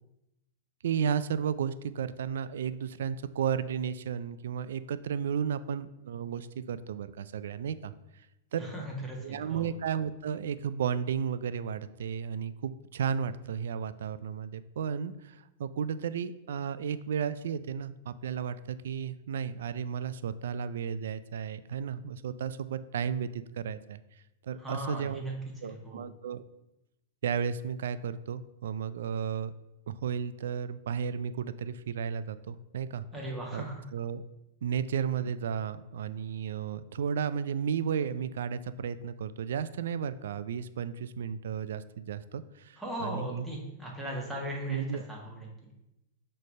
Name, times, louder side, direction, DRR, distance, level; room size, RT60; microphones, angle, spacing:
voice 1, 0.8-8.2 8.5-8.7 9.2-24.0 24.4-25.3 25.6-26.4 27.2-29.5 29.9-33.0 33.5-33.6 33.9-34.2 34.6-43.4 44.7-45.0, right 7 dB, 80° right, 14 dB, 0.3 m, -33 dB
voice 2, 8.6-9.7 24.6-25.3 25.6-26.0 33.1-33.8 42.8-45.5, right 1 dB, 5° right, -3 dB, 1.5 m, -37 dB
6.4 x 3.3 x 5.3 m, 0.90 s
hypercardioid pair, 140°, 0 cm